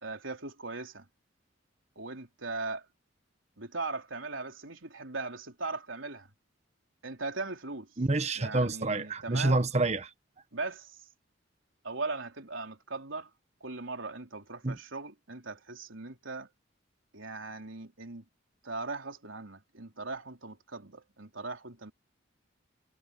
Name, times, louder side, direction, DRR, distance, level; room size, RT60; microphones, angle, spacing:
voice 1, 0.0-1.1 2.0-2.9 3.6-6.3 7.0-7.9 8.4-9.6 10.5-11.1 11.8-13.3 13.6-16.5 17.1-18.2 18.6-21.9, right 3 dB, 80° right, 3.7 m, -39 dB
voice 2, 8.0-10.1 14.6-14.8, right 2 dB, 35° right, 1.1 m, -28 dB
head